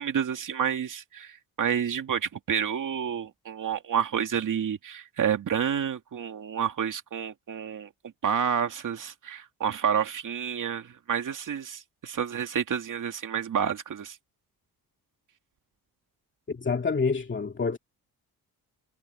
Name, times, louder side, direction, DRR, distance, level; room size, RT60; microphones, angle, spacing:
voice 1, 0.0-7.9 8.2-14.2, right 8 dB, 55° right, 2.4 m, -29 dB
voice 2, 16.5-17.8, left 4 dB, 30° left, 2.3 m, -27 dB
cardioid pair, 115°, 37 cm